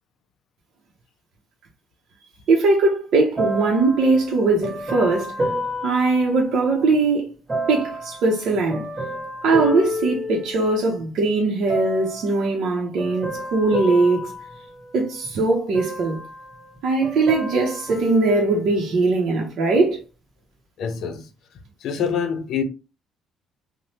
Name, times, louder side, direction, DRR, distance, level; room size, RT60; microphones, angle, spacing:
voice 1, 2.5-5.4 5.8-7.3 7.7-8.9 9.4-14.3 14.9-16.2 16.8-20.0, right 3 dB, 70° right, 0.7 m, -20 dB
sound 1, 3.4-7.0 7.5-11.0 11.7-12.3 13.0-15.3 15.7-16.8 17.0-19.1 19.7-19.8, equal, 20° right, 1.5 m, -30 dB
voice 2, 20.8-21.2 21.8-22.6, left 7 dB, 70° left, 0.5 m, -25 dB
3.0 x 2.1 x 2.8 m
cardioid pair, 105°, 0 cm